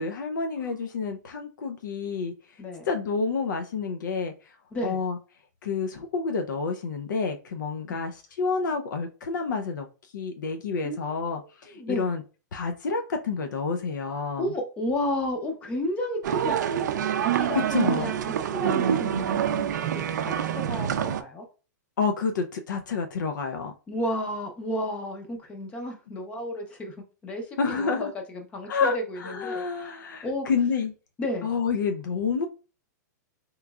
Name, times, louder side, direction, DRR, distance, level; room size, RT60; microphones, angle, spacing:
voice 1, 0.0-2.3 2.9-4.5 4.8-5.2 5.6-9.9 10.1-12.2 12.5-14.5 17.5-18.1 22.0-23.7 27.6-28.1 28.7-30.9 31.4-32.5, left 5 dB, 85° left, 0.5 m, -29 dB
voice 2, 11.7-12.1 14.4-16.9 17.1-19.9 20.2-21.5 23.9-26.9 27.2-29.6 30.2-30.5 31.2-31.5, left 1 dB, 10° left, 0.5 m, -32 dB
sound 1, 16.2-21.2, right 9 dB, 70° right, 0.4 m, -26 dB
3.6 x 3.0 x 2.3 m
hypercardioid pair, 170°, 10 cm